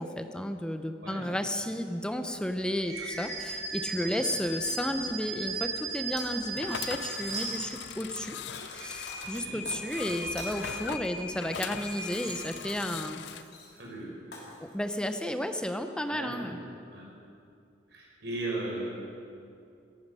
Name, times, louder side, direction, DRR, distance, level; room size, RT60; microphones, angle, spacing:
voice 1, 0.0-8.4 8.7-13.4 14.6-16.6, equal, 5° left, 7 dB, 0.7 m, -33 dB
sound 1, 2.8-8.1 8.6-12.8, right 3 dB, 40° right, 5.1 m, -38 dB
Shatter, 6.2-7.0 7.3-7.9 8.5-10.9 11.3-13.9 14.3-14.7, left 3 dB, 60° left, 3.5 m, -48 dB
sound 2, 6.5-13.4, left 8 dB, 80° left, 0.5 m, -41 dB
voice 2, 9.3-9.6 13.7-14.1 16.1-16.6 16.9-17.0 17.9-18.9, right 2 dB, 70° right, -3 dB, 5.2 m, -37 dB
17.0 x 14.5 x 5.6 m, 2.4 s
head